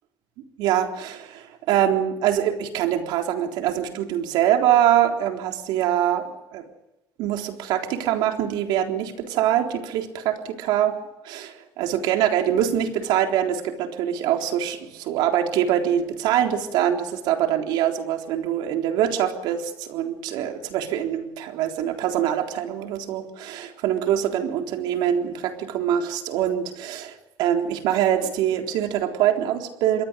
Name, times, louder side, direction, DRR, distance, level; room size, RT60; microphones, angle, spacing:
voice 1, 0.6-6.2 6.5-6.6 7.2-11.0 11.2-30.0, right 10 dB, 85° right, 4 dB, 3.8 m, -24 dB
28.0 x 22.5 x 5.3 m, 0.91 s
cardioid pair, 140°, 7 cm